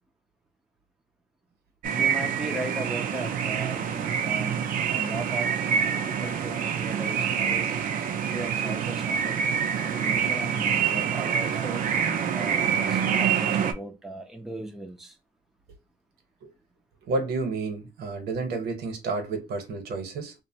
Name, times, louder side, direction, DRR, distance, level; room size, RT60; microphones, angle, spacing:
sound 1, 1.8-13.7, right 7 dB, 55° right, 0.5 m, -26 dB
voice 1, 1.9-5.5 6.0-7.6 8.3-9.4 9.9-15.2, right 1 dB, ahead, 0.5 m, -37 dB
voice 2, 17.1-20.3, right 3 dB, 75° right, 0.9 m, -30 dB
2.7 x 2.1 x 2.7 m
cardioid pair, 110°, 17 cm